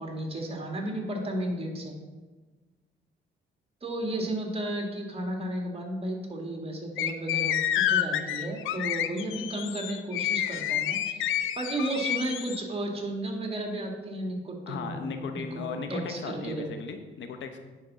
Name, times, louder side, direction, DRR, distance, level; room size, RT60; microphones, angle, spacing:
voice 1, 0.0-1.9 3.8-11.3 11.6-16.7, right 1 dB, 30° right, 1 dB, 2.2 m, -33 dB
sound 1, 7.0-12.6, left 11 dB, 85° left, 0.6 m, -29 dB
voice 2, 14.7-17.6, left 5 dB, 70° left, 7 dB, 1.0 m, -36 dB
9.3 x 5.3 x 6.2 m, 1.3 s
cardioid pair, 90°, 20 cm